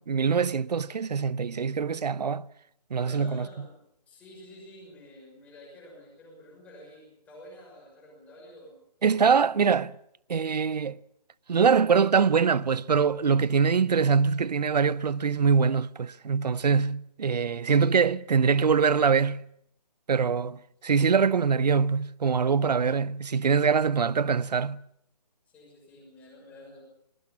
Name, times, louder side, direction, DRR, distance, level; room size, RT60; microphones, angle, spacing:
voice 1, 0.0-2.5 2.9-3.5 9.0-9.9 10.3-11.0 11.5-19.4 20.1-24.8, right 6 dB, 75° right, 0.8 m, -23 dB
voice 2, 3.0-3.8 4.1-8.8 25.5-26.8, left 1 dB, 5° left, 6.2 m, -49 dB
22.5 x 20.0 x 7.2 m
hypercardioid pair, 170°, 21 cm